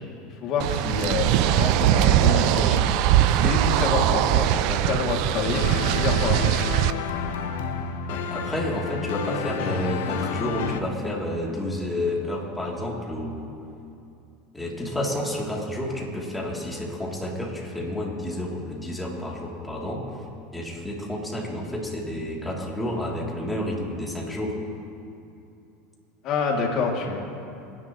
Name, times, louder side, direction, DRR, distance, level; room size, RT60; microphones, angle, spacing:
voice 1, 0.4-2.9 3.3-6.5 26.2-27.2, left 4 dB, 50° left, 0 dB, 2.8 m, -27 dB
sound 1, 0.6-6.9, right 12 dB, 65° right, 0.6 m, -21 dB
sound 2, 5.5-10.8, left 7 dB, 80° left, 1.0 m, -30 dB
voice 2, 8.1-13.5 14.5-20.0 20.5-24.5, left 1 dB, 5° left, -3 dB, 3.3 m, -30 dB
27.5 x 11.0 x 3.2 m, 2.7 s
supercardioid pair, 105°, 0 cm